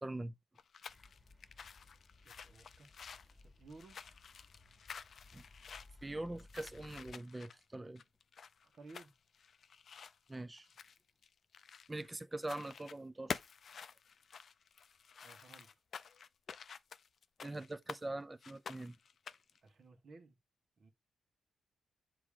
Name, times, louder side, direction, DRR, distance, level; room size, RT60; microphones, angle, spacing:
voice 1, 0.0-0.3 5.3-5.4 6.0-8.0 10.3-10.7 11.9-13.4 17.4-19.0, right 2 dB, 20° right, 0.6 m, -43 dB
sound 1, 0.5-12.1 12.4-13.0 13.3-18.0 18.4-19.6, left 6 dB, 60° left, 0.4 m, -50 dB
Exterior Residential Area Ambiance Bangalore India, 0.9-7.1, left 2 dB, 15° left, 1.6 m, -61 dB
voice 2, 2.2-2.9 3.3-4.0 8.6-9.1 15.2-15.8 19.6-20.4 20.8-20.9, right 3 dB, 55° right, 1.5 m, -57 dB
7.1 x 3.1 x 4.9 m
cardioid pair, 75°, 0 cm